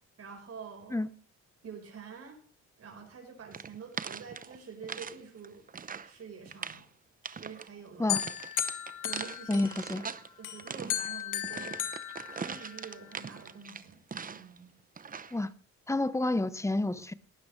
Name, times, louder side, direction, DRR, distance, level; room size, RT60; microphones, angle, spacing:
voice 1, 0.2-1.0 1.6-2.4 2.8-5.6 6.0-6.9 7.3-8.2 9.0-10.1 10.4-11.9 12.3-14.0 14.3-14.7, right 6 dB, 55° right, 4.7 m, -47 dB
sound 1, 3.5-5.2 5.4-6.1 6.5-6.8 7.2-7.7 8.2-10.3 10.6-14.6 15.0-15.4, right 6 dB, 30° right, 0.8 m, -41 dB
sound 2, 8.1-10.0 10.4-13.0, left 11 dB, 80° left, 2.2 m, -35 dB
voice 2, 9.5-10.0 15.3-15.5 15.9-17.1, left 2 dB, 10° left, 0.9 m, -29 dB
18.5 x 12.0 x 3.2 m
cardioid pair, 90°, 30 cm